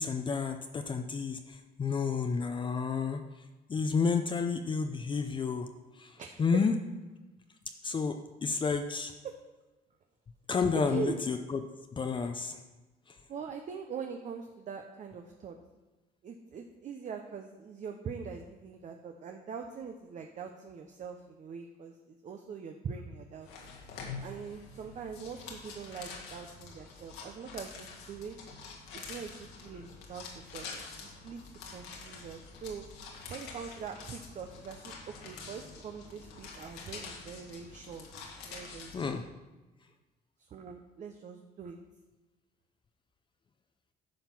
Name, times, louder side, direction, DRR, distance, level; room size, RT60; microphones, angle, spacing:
voice 1, 0.0-3.2 3.7-5.7 6.0-6.7 7.8-9.1 10.5-11.6 11.9-12.6 13.1-13.2 38.9-39.2, left 5 dB, 30° left, 6 dB, 0.6 m, -31 dB
voice 2, 6.2-6.6 9.2-9.4 10.7-11.2 13.3-15.6 16.2-23.7 24.2-28.4 28.9-31.4 31.7-32.9 33.3-39.2 40.4-41.8, right 6 dB, 45° right, 4 dB, 0.8 m, -43 dB
sound 1, 23.4-39.2, left 4 dB, 85° left, 1.9 m, -46 dB
10.0 x 5.5 x 6.0 m, 1.1 s
cardioid pair, 110°, 17 cm